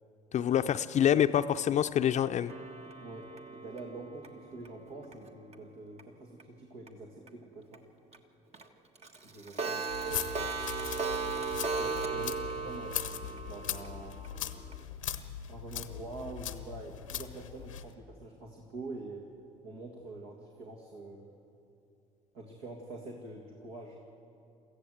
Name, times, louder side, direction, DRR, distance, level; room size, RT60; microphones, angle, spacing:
voice 1, 0.3-2.5, left 10 dB, 45° left, 10 dB, 0.6 m, -26 dB
voice 2, 1.1-1.4 3.0-7.8 9.2-9.9 11.7-14.2 15.5-19.3 19.6-21.3 22.3-24.0, right 2 dB, 70° right, 0 dB, 2.2 m, -45 dB
Clock, 2.5-5.5 6.0-6.1 6.4-6.5 6.9-7.0 7.3-7.4 7.7-7.8 8.1-8.2 8.5-8.6 9.0-14.8, right 4 dB, 40° right, 1.5 m, -37 dB
sound 1, 9.9-17.9, left 10 dB, 85° left, 0.9 m, -40 dB
23.5 x 15.0 x 7.9 m, 2.6 s
hypercardioid pair, 55°, 16 cm